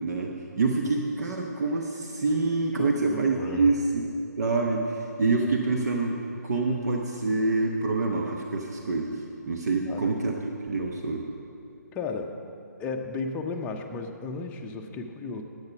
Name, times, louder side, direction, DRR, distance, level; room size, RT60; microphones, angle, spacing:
voice 1, 0.0-4.1 4.4-6.2 6.4-9.1 9.4-11.2, right 3 dB, 60° right, 1 dB, 0.9 m, -26 dB
voice 2, 2.8-3.7 9.9-10.1 11.9-12.4 12.8-15.4, left 4 dB, 15° left, 3 dB, 0.6 m, -34 dB
10.5 x 8.4 x 5.9 m, 2.6 s
figure-of-eight pair, 140°, 10 cm